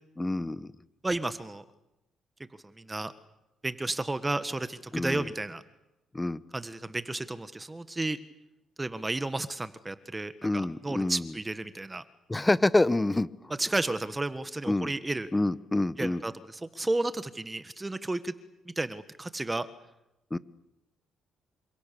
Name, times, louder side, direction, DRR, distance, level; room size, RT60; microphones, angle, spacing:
voice 1, 0.2-0.7 4.9-5.3 6.1-6.4 10.4-11.3 12.3-13.3 14.7-14.9 15.3-16.2 20.3-20.4, left 2 dB, 15° left, 1.1 m, -27 dB
voice 2, 1.0-1.6 2.7-3.1 3.6-5.6 6.5-8.2 8.8-12.0 13.6-15.3 16.0-18.3 18.7-19.7, right 2 dB, 15° right, 1.5 m, -32 dB
28.5 x 26.0 x 6.9 m
cardioid pair, 100°, 0 cm